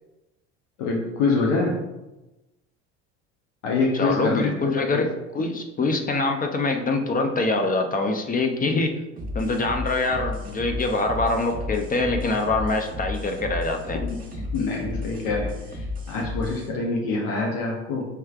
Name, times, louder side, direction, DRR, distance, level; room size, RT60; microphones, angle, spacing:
voice 1, 0.8-1.8 3.6-4.8 14.5-18.1, left 3 dB, 65° left, -1 dB, 0.8 m, -25 dB
voice 2, 3.9-9.0 9.3-14.1, left 2 dB, 25° left, 4 dB, 0.5 m, -24 dB
sound 1, 9.2-16.7, left 2 dB, 25° right, 1.2 m, -33 dB
4.6 x 3.1 x 2.4 m, 1.0 s
hypercardioid pair, 75°, 35 cm